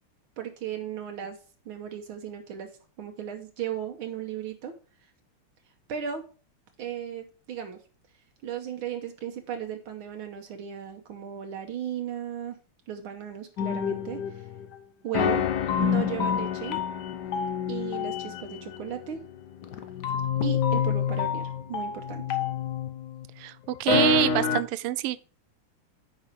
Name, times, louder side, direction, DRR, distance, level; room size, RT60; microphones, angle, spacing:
voice 1, 0.4-1.4 1.6-2.7 3.0-4.7 5.9-6.3 6.8-7.8 8.4-12.6 12.9-14.5 15.0-15.4 15.8-16.8 17.7-19.2 20.4-22.4, right 9 dB, 70° right, 1.7 m, -35 dB
sound 1, 13.6-14.7 15.1-23.2 23.7-24.6, left 7 dB, 60° left, 1.2 m, -28 dB
voice 2, 23.4-25.2, right 15 dB, 90° right, 1.5 m, -26 dB
9.0 x 5.4 x 4.5 m
omnidirectional pair, 2.4 m